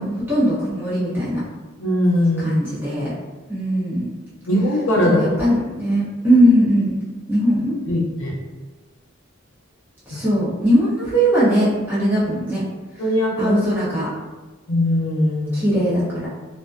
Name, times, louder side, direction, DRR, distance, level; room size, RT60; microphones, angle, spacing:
voice 1, 0.0-1.4 2.4-3.1 3.5-4.1 5.0-6.9 7.3-7.7 10.1-12.6 13.4-14.1 15.5-16.3, equal, 10° right, -11 dB, 0.8 m, -19 dB
voice 2, 1.8-2.5 4.5-5.3 7.9-8.3 10.1-10.2 13.0-13.5 14.7-15.7, left 1 dB, 70° left, -4 dB, 0.6 m, -20 dB
2.5 x 2.2 x 2.3 m, 1.2 s
head